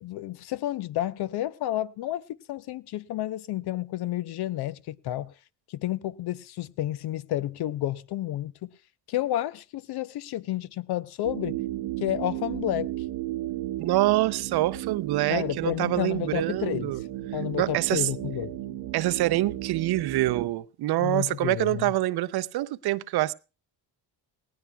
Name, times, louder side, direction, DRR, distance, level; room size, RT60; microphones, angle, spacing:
voice 1, 0.0-5.3 5.7-8.7 9.1-11.6 12.0-12.9 15.3-16.9 17.3-18.6 21.0-21.9, left 13 dB, 65° left, 0.6 m, -31 dB
sound 1, 11.2-20.5, right 14 dB, 85° right, 0.9 m, -34 dB
voice 2, 13.8-17.0 17.6-18.1 18.9-23.3, right 16 dB, 65° right, 0.6 m, -26 dB
18.0 x 17.5 x 2.3 m
cardioid pair, 90°, 41 cm